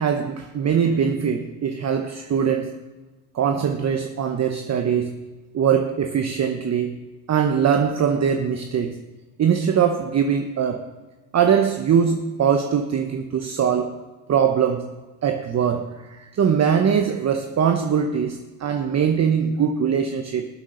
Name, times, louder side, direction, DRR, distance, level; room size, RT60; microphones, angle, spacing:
voice 1, 0.0-2.8 3.3-5.2 5.5-7.0 7.3-9.0 9.4-10.9 11.3-14.0 14.3-14.9 15.2-15.9 16.3-20.5, right 7 dB, 35° right, 6 dB, 0.9 m, -21 dB
19.0 x 7.5 x 3.9 m, 1.2 s
supercardioid pair, 85°, 46 cm